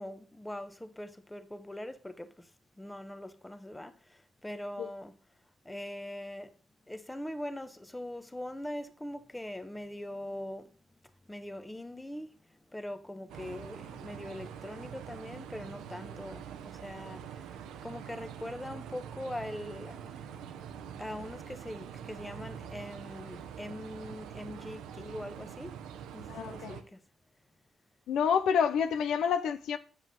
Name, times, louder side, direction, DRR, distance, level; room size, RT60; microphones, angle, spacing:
voice 1, 0.0-2.5 2.8-5.2 5.6-6.5 6.9-10.7 11.3-12.3 12.7-17.5 17.8-25.7 26.1-27.0, left 1 dB, 10° left, 1.1 m, -42 dB
sound 1, 13.3-26.8, right 8 dB, 90° right, 0.9 m, -45 dB
voice 2, 26.3-26.8 28.1-29.8, left 7 dB, 75° left, 0.7 m, -28 dB
8.2 x 7.3 x 5.4 m
cardioid pair, 90°, 0 cm